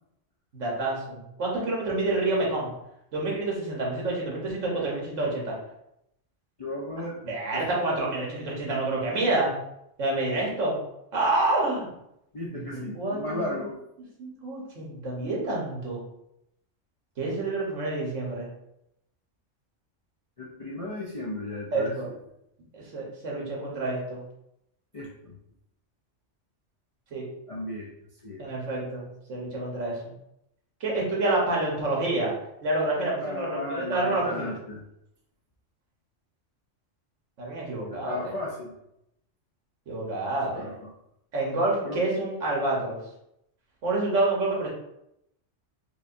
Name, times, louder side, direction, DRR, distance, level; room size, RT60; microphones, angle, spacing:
voice 1, 0.5-2.7 3.1-5.6 7.2-9.5 10.0-10.8 11.1-11.9 12.5-13.6 14.2-16.0 17.2-18.5 21.7-22.1 22.7-24.2 27.1-27.2 28.4-30.0 30.8-32.3 32.6-34.5 37.4-38.2 39.9-40.7 41.3-43.0 43.8-44.7, right 2 dB, 80° right, -3 dB, 1.4 m, -28 dB
voice 2, 6.6-7.2 7.5-7.7 12.3-13.8 20.4-22.2 24.9-25.3 27.5-27.9 28.2-28.5 33.2-34.8 37.8-38.7 40.5-40.7 41.8-42.0, left 1 dB, 60° left, -4 dB, 0.3 m, -35 dB
4.8 x 2.3 x 2.5 m, 0.81 s
omnidirectional pair, 1.3 m